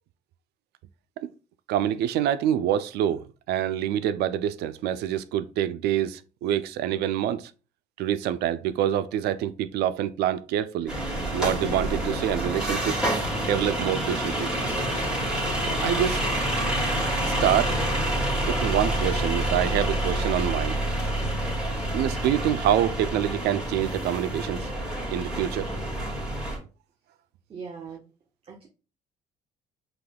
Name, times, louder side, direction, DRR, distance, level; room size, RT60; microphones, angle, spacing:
voice 1, 1.7-7.5 8.0-10.9 11.3-13.0 13.4-14.5 15.7-16.2 17.3-17.7 18.5-20.8 21.9-24.7 25.1-25.7, right 11 dB, 75° right, 0.4 m, -26 dB
sound 1, 10.9-26.6, right 1 dB, 5° right, 1.9 m, -27 dB
voice 2, 27.5-28.0 28.4-28.7, right 5 dB, 35° right, 0.7 m, -39 dB
5.8 x 3.4 x 2.2 m
cardioid pair, 110°, 17 cm